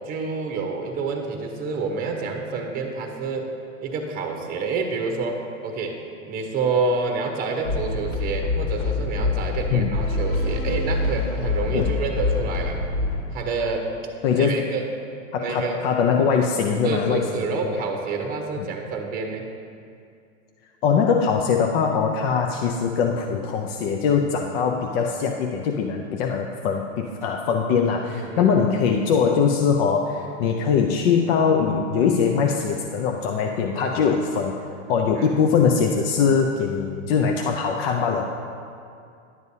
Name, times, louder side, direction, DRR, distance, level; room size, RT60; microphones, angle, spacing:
voice 1, 0.1-3.5 3.8-6.0 6.3-12.8 13.3-13.9 14.4-14.8 15.4-15.8 16.8-19.5 28.1-28.5 33.7-33.9 35.1-35.3, right 4 dB, 20° right, 3 dB, 0.9 m, -28 dB
sound 1, 7.6-13.2, left 3 dB, 80° left, 2.2 m, -25 dB
voice 2, 14.2-14.7 15.3-17.9 20.8-34.6 34.9-38.2, left 6 dB, 50° left, 2 dB, 0.6 m, -22 dB
11.0 x 7.9 x 2.7 m, 2.4 s
hypercardioid pair, 125°, 39 cm